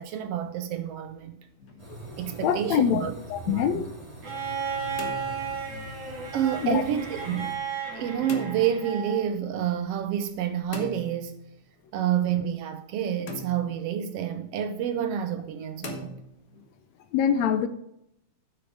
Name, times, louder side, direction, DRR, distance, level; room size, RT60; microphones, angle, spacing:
voice 1, 0.0-1.4 2.2-3.1 3.5-3.8 6.3-7.6 7.9-11.4 11.9-16.1, right 9 dB, 75° right, 1.5 m, -28 dB
sound 1, 1.6-2.1 4.7-5.9 8.3-8.9 10.7-11.7 13.3-14.0 15.8-16.7, left 3 dB, 50° left, 0.9 m, -41 dB
sound 2, 1.8-7.5, right 2 dB, 10° right, 4.2 m, -43 dB
voice 2, 2.4-3.0 3.3-3.9 5.7-5.9 6.6-6.8 17.1-17.7, left 8 dB, 75° left, 1.8 m, -24 dB
Bowed string instrument, 4.2-9.3 10.7-10.8, right 6 dB, 40° right, 2.6 m, -34 dB
9.6 x 8.3 x 5.0 m
omnidirectional pair, 3.5 m